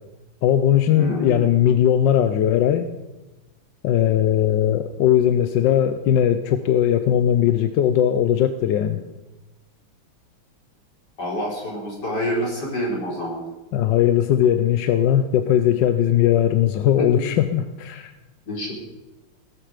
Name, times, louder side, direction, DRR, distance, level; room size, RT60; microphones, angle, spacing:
voice 1, 0.4-2.9 3.8-9.0 13.7-18.1, left 10 dB, 65° left, 9 dB, 1.2 m, -19 dB
voice 2, 0.9-1.4 11.2-13.4 17.0-17.1 18.4-18.7, equal, 50° left, -3 dB, 5.2 m, -27 dB
17.5 x 13.5 x 5.1 m, 1.1 s
omnidirectional pair, 2.4 m